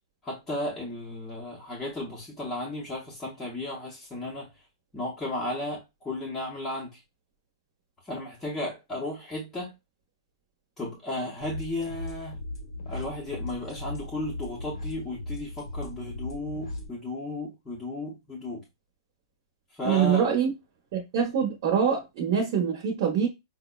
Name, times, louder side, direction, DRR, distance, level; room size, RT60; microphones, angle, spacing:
voice 1, 0.2-4.5 4.9-7.0 8.0-9.7 10.8-12.4 12.9-18.6 19.7-20.2, left 1 dB, 10° left, 0.7 m, -34 dB
sound 1, 11.4-16.9, left 2 dB, 90° left, 1.1 m, -37 dB
voice 2, 19.8-20.5 20.9-23.3, right 7 dB, 40° right, 0.8 m, -24 dB
5.1 x 2.0 x 2.2 m
hypercardioid pair, 165°, 3 cm